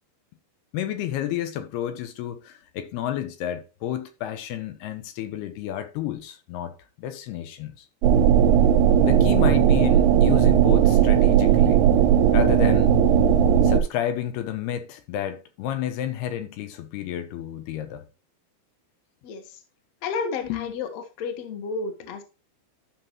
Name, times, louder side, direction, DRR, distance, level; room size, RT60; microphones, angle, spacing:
voice 1, 0.7-6.7 7.0-7.9 9.0-11.8 12.3-12.9 13.6-18.0 20.4-20.8, left 11 dB, 80° left, 3.0 m, -31 dB
sound 1, 8.0-13.8, right 9 dB, 90° right, 2.8 m, -17 dB
voice 2, 20.0-22.2, left 4 dB, 55° left, 2.0 m, -31 dB
12.5 x 6.0 x 3.0 m
omnidirectional pair, 4.7 m